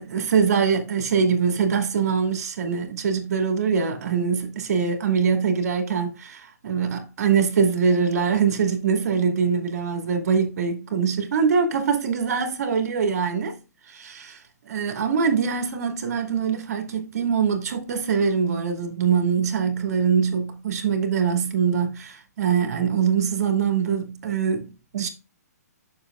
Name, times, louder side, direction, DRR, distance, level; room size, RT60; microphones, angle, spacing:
voice 1, 0.0-13.6 13.9-25.1, right 6 dB, 65° right, 2.5 m, -23 dB
10.5 x 6.9 x 2.5 m
hypercardioid pair, 145°, 9 cm